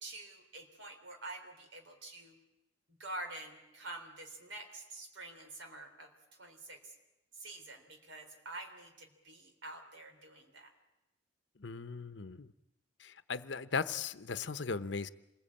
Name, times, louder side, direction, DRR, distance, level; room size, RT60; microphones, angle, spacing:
voice 1, 0.0-2.4 2.9-6.9 7.3-10.7, right 2 dB, 80° right, 4 dB, 3.7 m, -47 dB
voice 2, 11.6-12.5 13.0-15.1, left 5 dB, 70° left, 13 dB, 0.8 m, -38 dB
27.0 x 21.5 x 8.7 m, 0.98 s
head